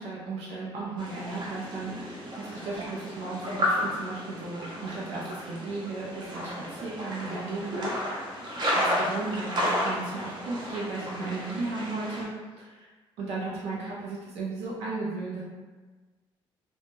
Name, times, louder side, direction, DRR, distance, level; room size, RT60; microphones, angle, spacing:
voice 1, 0.0-8.2 8.7-12.3 12.6-12.9 13.2-15.4, right 3 dB, 90° right, -7 dB, 0.6 m, -35 dB
sound 1, 1.0-12.2, equal, 45° right, 0.7 m, -32 dB
2.2 x 2.0 x 3.0 m, 1.3 s
cardioid pair, 125°, 10 cm